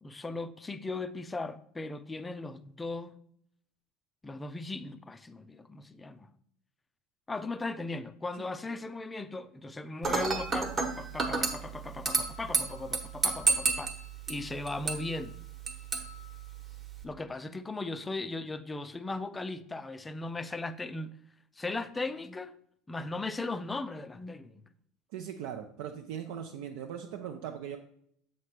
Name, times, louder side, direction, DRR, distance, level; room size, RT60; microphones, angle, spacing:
voice 1, 0.0-3.2 4.2-6.3 7.3-13.9 14.3-15.3 17.0-21.2 21.6-22.5 22.9-24.5, left 2 dB, 10° left, 0.4 m, -37 dB
Dishes pots and pans / Glass, 10.0-17.0, right 4 dB, 20° right, 1.1 m, -32 dB
voice 2, 25.1-27.8, right 9 dB, 70° right, 0.6 m, -39 dB
7.8 x 3.2 x 5.9 m
cardioid pair, 160°, 0 cm